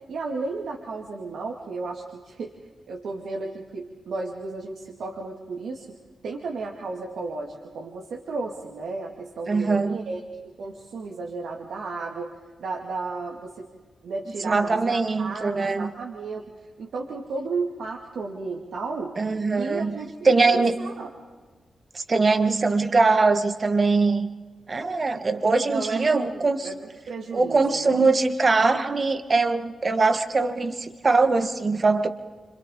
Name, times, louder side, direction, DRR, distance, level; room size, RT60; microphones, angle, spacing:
voice 1, 0.1-2.5 2.9-5.9 6.2-10.2 10.6-12.3 12.6-13.7 14.0-16.4 16.8-19.2 19.6-21.1 25.7-28.0, right 3 dB, 85° right, -1 dB, 2.4 m, -33 dB
voice 2, 9.5-10.0 14.4-15.9 19.2-20.0 20.3-20.8 21.9-24.3 24.7-26.7 27.3-32.1, right 3 dB, 35° right, 7 dB, 1.7 m, -22 dB
30.0 x 26.0 x 3.9 m, 1.4 s
wide cardioid pair, 115°, 0 cm